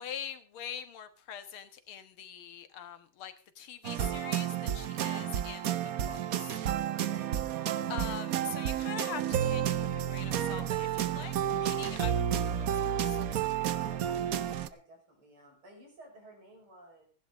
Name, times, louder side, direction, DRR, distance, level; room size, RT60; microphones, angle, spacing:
voice 1, 0.0-5.8 6.1-6.6 7.9-13.2, left 8 dB, 90° left, 9 dB, 2.3 m, -43 dB
sound 1, 3.8-14.7, right 10 dB, 60° right, 1.0 m, -31 dB
voice 2, 6.9-7.4 13.6-14.3 14.7-17.0, right 1 dB, 85° right, 0 dB, 6.5 m, -54 dB
15.5 x 11.0 x 5.0 m, 0.37 s
omnidirectional pair, 2.3 m